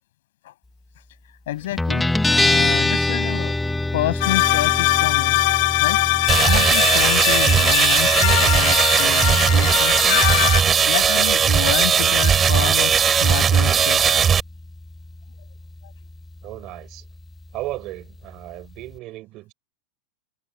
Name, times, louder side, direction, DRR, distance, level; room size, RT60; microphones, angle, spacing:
voice 1, 1.5-3.5 3.9-5.4 5.8-6.0 6.4-10.2 10.9-14.3 15.8-15.9, left 15 dB, 70° left, 7.0 m, -29 dB
Guitar, 1.8-19.0, left 2 dB, 5° left, 1.0 m, -28 dB
sound 1, 4.2-10.6, left 18 dB, 50° left, 1.9 m, -21 dB
sound 2, 6.3-14.4, right 7 dB, 15° right, 3.1 m, -18 dB
voice 2, 16.4-17.1 17.5-19.5, right 17 dB, 35° right, 6.7 m, -35 dB
supercardioid pair, 165°, 0 cm